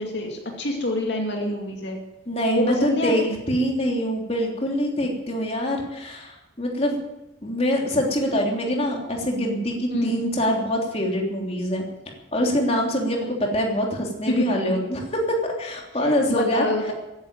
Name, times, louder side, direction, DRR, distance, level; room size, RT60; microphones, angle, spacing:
voice 1, 0.0-2.0 2.5-3.4 9.9-10.2 14.3-14.4 14.7-14.8 16.0-16.9, left 1 dB, 65° left, 1 dB, 2.4 m, -26 dB
voice 2, 2.3-7.0 7.4-11.8 12.3-16.9, equal, 35° left, 0 dB, 3.2 m, -24 dB
15.5 x 10.5 x 9.0 m, 0.96 s
head